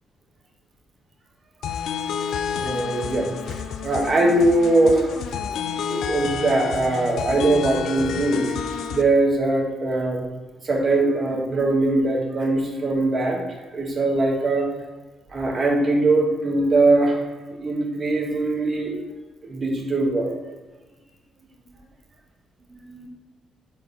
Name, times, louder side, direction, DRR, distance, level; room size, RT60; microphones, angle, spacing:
sound 1, 1.6-9.0, left 7 dB, 75° left, 0.4 m, -30 dB
voice 1, 2.5-5.2 5.9-8.6 8.9-10.2 10.6-13.4 13.7-14.7 15.3-17.2 17.5-18.9 19.4-20.3 22.7-23.1, right 2 dB, 40° right, 0 dB, 1.5 m, -21 dB
4.5 x 4.1 x 5.2 m, 1.2 s
cardioid pair, 90°, 0 cm